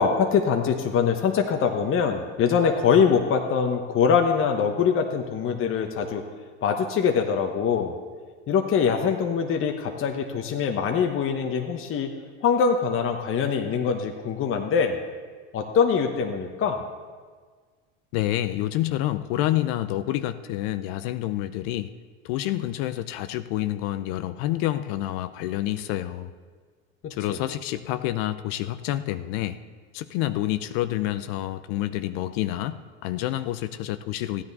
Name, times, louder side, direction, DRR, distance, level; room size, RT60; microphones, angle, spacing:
voice 1, 0.0-6.2 6.6-8.0 8.5-12.1 12.4-15.0 15.5-16.8 27.3-27.4, left 6 dB, 40° left, 3 dB, 1.0 m, -23 dB
voice 2, 18.1-21.9 22.2-26.3 27.1-29.6 29.9-34.4, left 14 dB, 65° left, 11 dB, 0.6 m, -28 dB
14.5 x 9.8 x 4.1 m, 1.5 s
supercardioid pair, 95°, 33 cm